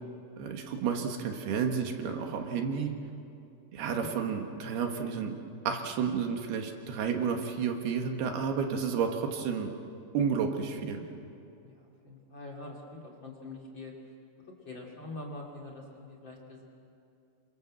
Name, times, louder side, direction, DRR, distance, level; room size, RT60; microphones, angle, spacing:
voice 1, 0.4-2.9 3.7-5.4 5.7-9.7 10.1-11.0, right 6 dB, 75° right, 4 dB, 3.5 m, -31 dB
voice 2, 11.6-13.9 14.6-16.6, left 2 dB, 30° left, 1 dB, 2.9 m, -44 dB
27.5 x 25.0 x 7.6 m, 2.6 s
omnidirectional pair, 4.7 m